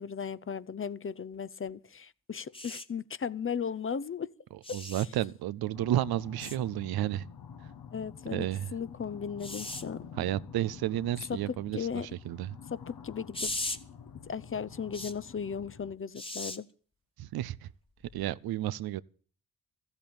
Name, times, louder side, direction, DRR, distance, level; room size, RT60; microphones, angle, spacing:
voice 1, 0.0-4.3 7.9-10.0 11.3-12.1 12.7-13.5 14.2-16.7, left 7 dB, 35° left, 0.7 m, -36 dB
sound 1, 2.5-2.8 4.6-5.1 6.4-6.6 9.4-9.8 13.3-13.8 14.9-15.1 16.1-16.6 18.0-18.2, left 2 dB, 15° left, 1.5 m, -37 dB
voice 2, 4.7-7.2 8.3-8.7 10.2-12.6 17.2-17.7 18.1-19.0, right 13 dB, 75° right, 0.6 m, -32 dB
sound 2, 5.7-16.0, left 7 dB, 75° left, 1.6 m, -48 dB
14.0 x 8.2 x 8.7 m
supercardioid pair, 50°, 37 cm